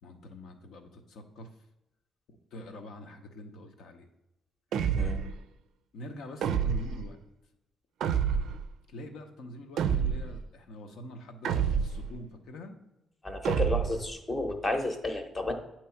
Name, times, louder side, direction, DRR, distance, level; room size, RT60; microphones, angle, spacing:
voice 1, 0.0-1.5 2.3-4.1 5.0-5.2 5.9-7.2 8.9-12.8, left 1 dB, 75° left, 5 dB, 0.9 m, -45 dB
sound 1, 4.7-5.4 6.4-7.0 8.0-8.7 9.8-10.4 11.4-12.1 13.4-14.1, right 7 dB, 75° right, 0.4 m, -28 dB
voice 2, 13.2-15.5, left 2 dB, 20° left, 6 dB, 0.8 m, -31 dB
8.7 x 3.0 x 5.7 m, 0.91 s
cardioid pair, 140°, 0 cm